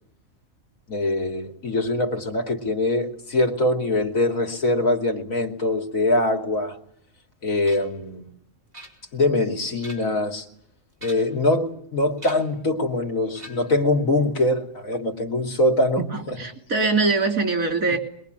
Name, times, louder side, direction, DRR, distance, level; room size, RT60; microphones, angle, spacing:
voice 1, 0.9-6.8 7.4-8.3 9.1-10.4 11.0-16.4, left 1 dB, 85° left, 3 dB, 3.3 m, -23 dB
sound 1, 7.7-8.0 8.7-9.3 9.7-10.3 10.9-11.5 12.2-12.6 13.3-13.8, equal, 30° right, 4.6 m, -44 dB
voice 2, 16.0-18.0, right 3 dB, 85° right, 5 dB, 3.9 m, -23 dB
26.0 x 22.0 x 9.4 m, 0.67 s
omnidirectional pair, 1.4 m